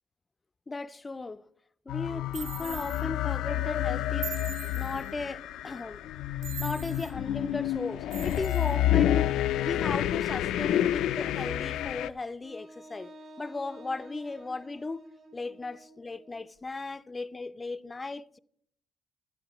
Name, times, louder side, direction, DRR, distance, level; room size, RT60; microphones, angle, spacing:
voice 1, 0.7-1.5 1.9-4.3 4.7-6.0 6.6-9.3 9.6-13.1 13.4-15.0 15.3-18.4, left 3 dB, 25° left, 0.4 m, -36 dB
sound 1, 1.9-12.1, left 12 dB, 85° left, 0.4 m, -29 dB
sound 2, 2.3-3.0 4.2-5.1 6.4-7.1 8.1-8.7, right 9 dB, 80° right, 0.6 m, -41 dB
Wind instrument woodwind instrument, 12.4-16.5, equal, 60° right, 5.3 m, -50 dB
15.5 x 11.5 x 3.0 m
cardioid pair, 90°, 0 cm